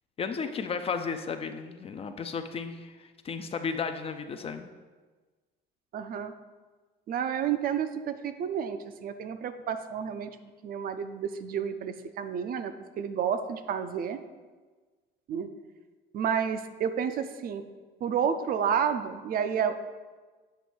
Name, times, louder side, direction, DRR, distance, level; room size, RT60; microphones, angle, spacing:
voice 1, 0.2-4.7, left 5 dB, 30° left, 8 dB, 0.4 m, -34 dB
voice 2, 5.9-6.3 7.1-10.3 10.6-14.2 15.3-15.5 16.1-17.6 18.0-19.8, right 7 dB, 45° right, 9 dB, 0.5 m, -30 dB
7.6 x 3.1 x 6.1 m, 1.3 s
cardioid pair, 150°, 20 cm